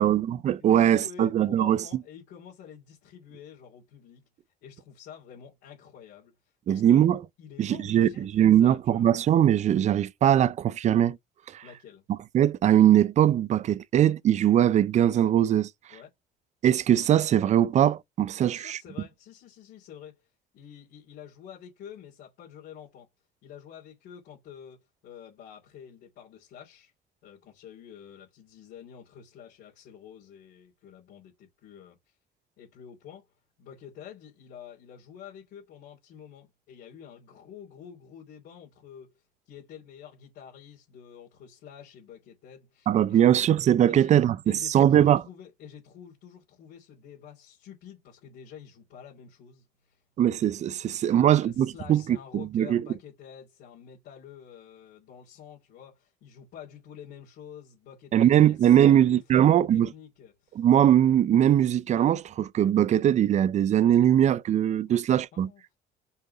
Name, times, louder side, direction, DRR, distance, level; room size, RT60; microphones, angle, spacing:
voice 1, 0.0-1.8 6.7-7.2 7.6-11.2 11.5-11.6 12.1-15.7 16.6-18.8 42.9-45.2 50.2-52.0 52.3-52.8 58.1-59.9 60.6-65.5, right 10 dB, 45° right, 0.4 m, -21 dB
voice 2, 0.7-4.3 4.6-6.3 6.7-7.0 7.4-9.1 11.6-12.1 15.9-16.1 18.4-20.1 20.5-23.1 23.4-26.9 27.2-32.0 32.6-33.3 33.6-39.1 39.4-43.4 43.9-44.1 44.4-50.0 51.1-60.6 64.9-65.0 65.3-65.8, left 8 dB, 75° left, 3.3 m, -48 dB
5.6 x 3.8 x 4.6 m
cardioid pair, 110°, 17 cm